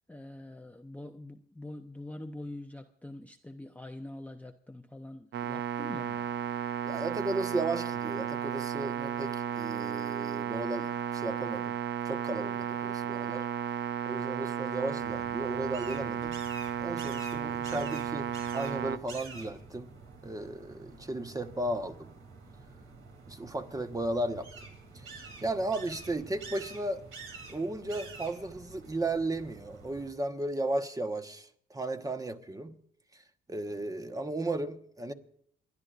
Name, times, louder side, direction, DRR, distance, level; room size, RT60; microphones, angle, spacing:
voice 1, 0.1-6.3, left 1 dB, 5° left, 0.7 m, -44 dB
sound 1, 5.3-19.0, right 9 dB, 60° right, 0.6 m, -34 dB
voice 2, 6.8-11.8 12.0-13.5 14.1-16.4 16.8-19.9 20.2-22.1 23.3-24.5 24.9-27.0 27.5-32.8 33.5-35.1, right 2 dB, 15° right, 1.2 m, -35 dB
sound 2, 15.0-30.1, right 3 dB, 85° right, 3.1 m, -48 dB
28.5 x 11.0 x 2.5 m
cardioid pair, 90°, 20 cm